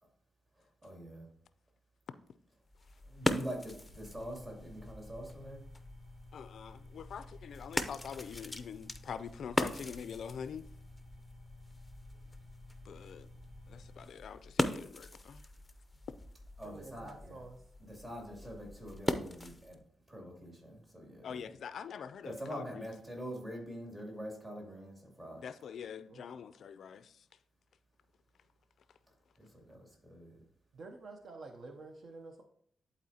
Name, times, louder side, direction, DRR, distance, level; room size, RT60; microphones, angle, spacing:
voice 1, 0.6-1.3 3.1-5.6 7.6-7.8 16.6-17.4 17.8-19.8 20.1-21.5 22.2-25.5 29.4-30.4, equal, 25° right, 2.4 m, -45 dB
sound 1, 2.6-19.8, left 1 dB, 15° left, 0.5 m, -40 dB
sound 2, 3.9-14.0, left 2 dB, 80° right, 3.2 m, -54 dB
voice 2, 6.3-10.7 12.8-13.3 13.7-15.5 21.2-22.9 25.4-27.2, left 7 dB, 70° left, 0.3 m, -45 dB
voice 3, 16.6-17.6 26.1-26.2 30.7-32.4, right 3 dB, 55° right, 0.7 m, -49 dB
11.0 x 4.1 x 2.8 m
cardioid pair, 100°, 0 cm